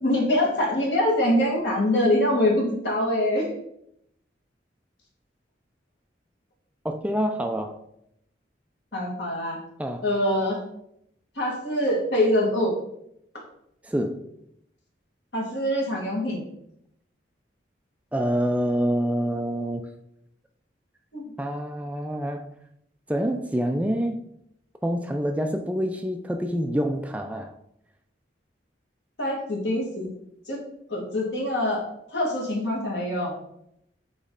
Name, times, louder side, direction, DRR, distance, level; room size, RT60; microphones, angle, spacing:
voice 1, 0.0-3.5 8.9-9.6 10.0-10.6 11.4-12.8 15.3-16.4 21.1-21.2 29.2-30.1 30.5-30.6 30.9-31.8 32.1-33.4, left 1 dB, 75° left, -2 dB, 1.9 m, -24 dB
voice 2, 6.8-7.8 9.8-10.1 13.8-14.2 18.1-19.9 21.4-22.5 23.1-24.2 24.8-27.5, equal, 10° right, 5 dB, 0.3 m, -26 dB
8.0 x 3.1 x 3.8 m, 0.76 s
head